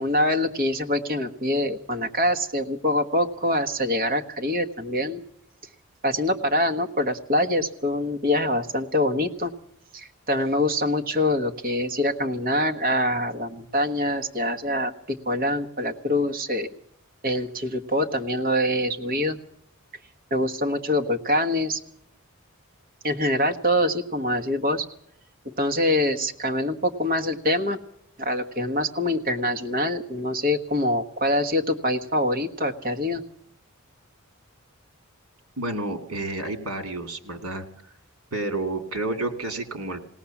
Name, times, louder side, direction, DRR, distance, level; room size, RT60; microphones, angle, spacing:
voice 1, 0.0-5.2 6.0-9.5 9.9-16.7 17.2-19.4 20.3-21.8 23.0-24.8 25.4-27.8 28.2-33.2, left 1 dB, 40° right, 4 dB, 1.4 m, -25 dB
voice 2, 35.6-37.7 38.3-40.1, right 2 dB, 80° right, 7 dB, 2.5 m, -30 dB
20.0 x 18.0 x 7.2 m, 0.74 s
head